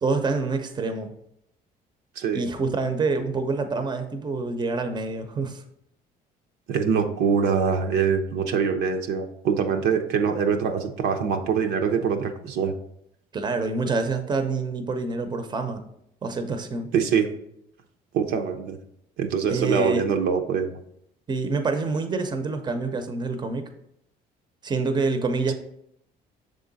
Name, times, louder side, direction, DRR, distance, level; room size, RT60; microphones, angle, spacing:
voice 1, 0.0-1.1 2.3-5.6 13.3-15.8 16.2-16.9 19.5-20.0 21.3-23.7 24.6-25.5, right 3 dB, 25° right, 7 dB, 0.7 m, -26 dB
voice 2, 6.7-12.7 16.9-17.3 18.1-18.8 19.2-20.8, right 6 dB, 80° right, 5 dB, 0.7 m, -24 dB
6.6 x 3.7 x 4.0 m, 0.75 s
cardioid pair, 110°, 17 cm